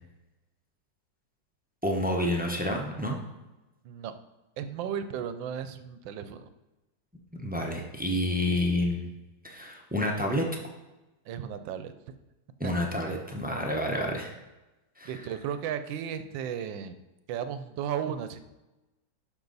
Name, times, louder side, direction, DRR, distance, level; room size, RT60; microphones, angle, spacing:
voice 1, 1.8-3.2 7.4-9.1 9.4-10.5 12.6-14.3 15.0-15.1, left 1 dB, 10° right, 1 dB, 0.5 m, -29 dB
voice 2, 4.6-6.5 11.3-11.9 12.6-12.7 13.0-13.2 15.0-17.0 17.3-18.4, right 8 dB, 90° right, 11 dB, 1.4 m, -35 dB
12.0 x 5.7 x 4.0 m, 1.0 s
omnidirectional pair, 2.0 m